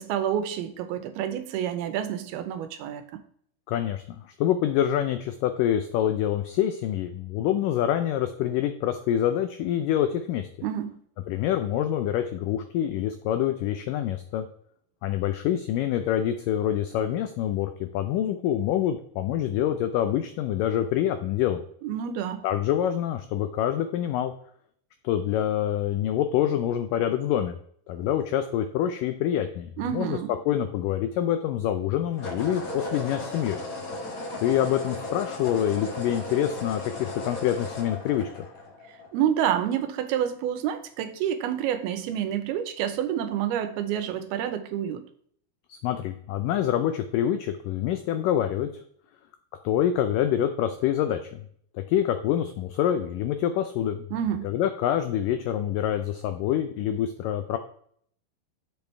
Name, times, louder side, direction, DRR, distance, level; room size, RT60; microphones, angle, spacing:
voice 1, 0.0-3.0 10.6-11.0 21.8-22.4 29.8-30.3 38.9-45.1 54.1-54.5, right 10 dB, 80° right, 10 dB, 2.7 m, -28 dB
voice 2, 3.7-10.5 11.3-14.5 15.0-21.6 22.4-24.3 25.0-27.6 27.9-30.2 30.5-33.6 34.4-38.3 45.7-48.8 49.6-51.5 51.8-54.0 54.4-57.6, left 10 dB, 85° left, 8 dB, 1.9 m, -26 dB
sound 1, 27.9-28.2 32.1-39.2, left 2 dB, 45° left, 1.1 m, -36 dB
10.5 x 6.8 x 3.3 m, 0.63 s
omnidirectional pair, 4.5 m